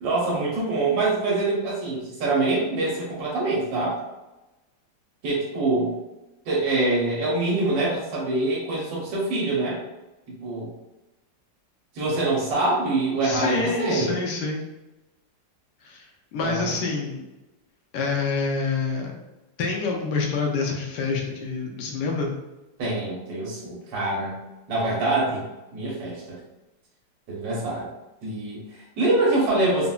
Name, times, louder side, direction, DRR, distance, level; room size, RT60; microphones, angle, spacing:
voice 1, 0.0-4.0 5.2-5.9 6.5-9.8 10.3-10.7 11.9-14.1 16.4-16.7 22.8-24.4 24.7-25.4 25.7-26.4 27.3-27.9 28.2-29.9, right 2 dB, 80° right, -5 dB, 1.4 m, -25 dB
voice 2, 13.2-14.7 15.8-16.1 16.3-17.2 17.9-19.1 19.6-22.3, left 4 dB, 75° left, 0 dB, 1.1 m, -27 dB
3.8 x 2.1 x 2.2 m, 1.0 s
omnidirectional pair, 2.0 m